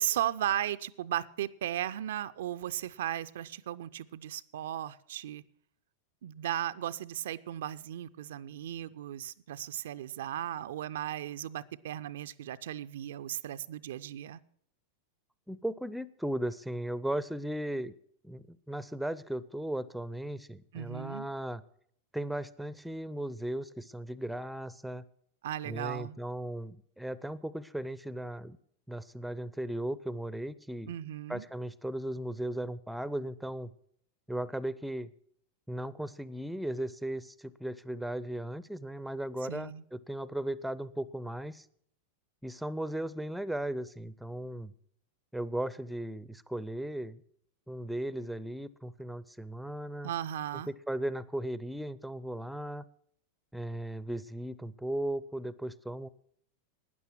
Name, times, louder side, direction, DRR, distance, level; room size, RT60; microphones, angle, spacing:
voice 1, 0.0-5.4 6.2-14.4 20.7-21.3 25.4-26.2 30.9-31.4 39.5-39.8 50.0-50.7, right 11 dB, 60° right, 12 dB, 0.4 m, -36 dB
voice 2, 15.5-17.9 18.2-21.6 22.1-25.0 25.6-28.6 28.9-30.9 31.3-33.7 34.3-35.1 35.7-41.7 42.4-44.7 45.3-47.2 47.7-50.1 50.7-52.8 53.5-56.1, right 1 dB, ahead, 18 dB, 0.5 m, -36 dB
12.0 x 9.7 x 6.0 m, 0.65 s
figure-of-eight pair, 90°, 0 cm